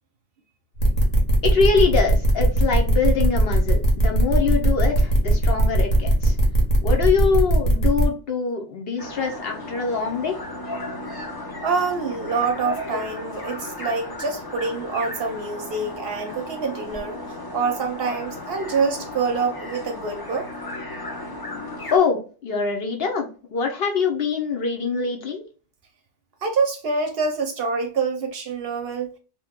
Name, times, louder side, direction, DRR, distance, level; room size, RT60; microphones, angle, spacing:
sound 1, 0.8-8.1, right 2 dB, 80° left, 1.3 m, -19 dB
voice 1, 1.4-6.4 6.8-10.4 21.9-25.5, left 5 dB, 60° left, 0.8 m, -24 dB
sound 2, 9.0-22.0, left 2 dB, 30° left, 0.4 m, -35 dB
voice 2, 11.6-17.2 17.5-20.5 26.4-29.1, right 4 dB, 60° right, 0.7 m, -26 dB
2.8 x 2.2 x 3.5 m
omnidirectional pair, 1.3 m